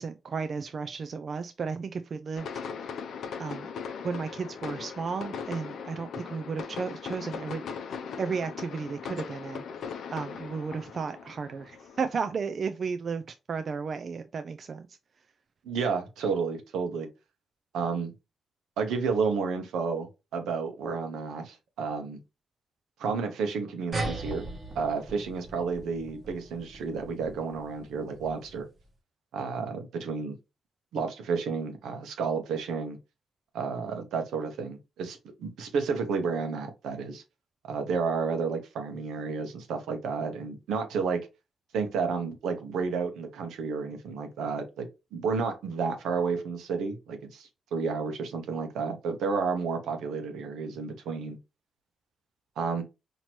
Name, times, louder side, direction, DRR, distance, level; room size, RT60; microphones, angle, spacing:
voice 1, 0.0-2.5 3.4-3.7 4.0-7.6 8.2-9.6 10.1-14.9, right 5 dB, 55° right, 0.4 m, -34 dB
sound 1, 2.4-12.3, left 6 dB, 75° left, 0.5 m, -39 dB
voice 2, 15.6-17.1 17.7-18.1 18.8-22.2 23.0-24.5 24.7-28.7 29.3-30.3 30.9-33.0 33.5-37.2 37.7-41.3 41.7-44.9 45.1-51.4 52.6-52.8, right 5 dB, 85° right, 0.9 m, -31 dB
sound 2, 23.9-28.8, right 2 dB, 35° right, 1.3 m, -39 dB
4.3 x 2.9 x 2.9 m
cardioid pair, 70°, 0 cm